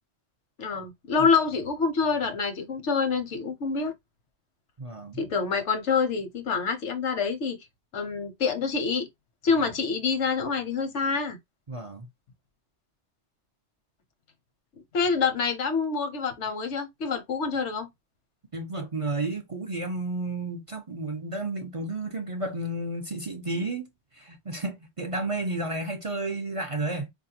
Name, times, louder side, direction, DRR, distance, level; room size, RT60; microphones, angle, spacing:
voice 1, 0.6-3.9 5.2-7.6 7.9-9.1 9.4-11.4 14.9-17.9, left 5 dB, 85° left, 1.1 m, -26 dB
voice 2, 4.8-5.2 11.7-12.1 18.5-23.9 24.1-27.1, right 2 dB, 40° right, 0.5 m, -32 dB
4.0 x 2.6 x 2.7 m
omnidirectional pair, 1.2 m